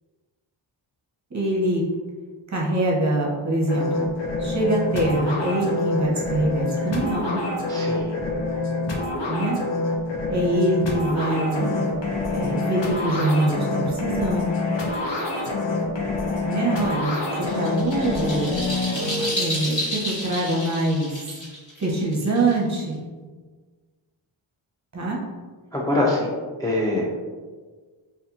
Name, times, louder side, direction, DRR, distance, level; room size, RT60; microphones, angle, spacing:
voice 1, 1.3-1.9 2.5-4.1 4.4-7.4 9.3-9.6 10.3-11.8 12.3-14.6 16.4-18.5 19.4-21.2 21.8-23.0 24.9-25.2, right 1 dB, 35° right, -3 dB, 0.8 m, -24 dB
sound 1, 3.7-19.3, left 3 dB, 60° left, 0.7 m, -26 dB
voice 2, 7.7-8.2 16.4-16.6 25.7-26.3 26.6-27.2, left 1 dB, 10° left, -3 dB, 0.4 m, -25 dB
sound 2, 17.1-22.9, equal, 40° left, 1.4 m, -31 dB
2.6 x 2.5 x 2.4 m, 1.4 s
cardioid pair, 40°, 49 cm